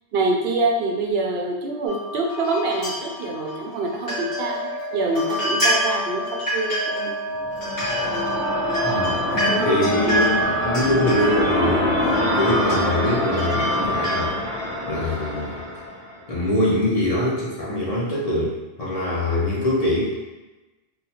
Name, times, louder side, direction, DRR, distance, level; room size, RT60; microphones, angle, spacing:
voice 1, 0.1-7.1 10.1-10.3, right 2 dB, 70° right, 0 dB, 0.8 m, -25 dB
sound 1, 1.9-14.3, right 1 dB, 60° left, 1.9 m, -27 dB
sound 2, 7.4-16.2, left 1 dB, 75° left, 1.2 m, -25 dB
voice 2, 8.8-14.3 14.9-15.6 16.3-20.1, left 1 dB, 40° left, -6 dB, 0.8 m, -24 dB
3.5 x 2.2 x 2.8 m, 1.1 s
omnidirectional pair, 1.1 m